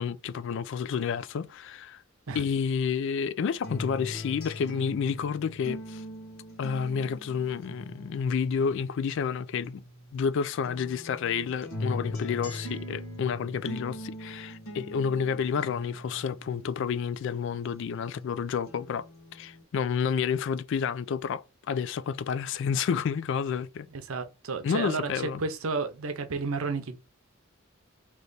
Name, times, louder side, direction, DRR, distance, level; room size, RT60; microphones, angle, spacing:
voice 1, 0.0-2.0 2.3-6.0 6.6-9.8 10.1-19.1 19.3-23.9 24.6-25.4, left 6 dB, 60° left, 0.3 m, -30 dB
sound 1, 3.6-10.3 10.6-18.3 18.7-19.6, left 1 dB, 80° left, 1.2 m, -41 dB
voice 2, 23.9-25.1 25.4-27.0, right 4 dB, 80° right, 0.7 m, -32 dB
3.3 x 2.9 x 3.9 m
head